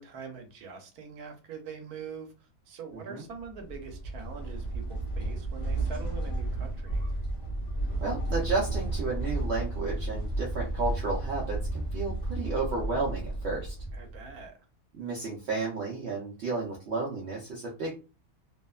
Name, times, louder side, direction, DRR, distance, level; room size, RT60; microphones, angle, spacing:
voice 1, 0.0-2.3 2.7-7.0 13.9-14.6, right 5 dB, 80° right, 5 dB, 1.2 m, -43 dB
sound 1, 3.4-14.4, right 2 dB, 40° left, 0.6 m, -33 dB
voice 2, 8.0-13.8 14.9-17.9, right 3 dB, 60° right, -3 dB, 0.7 m, -32 dB
2.8 x 2.0 x 2.2 m, 0.32 s
omnidirectional pair, 1.6 m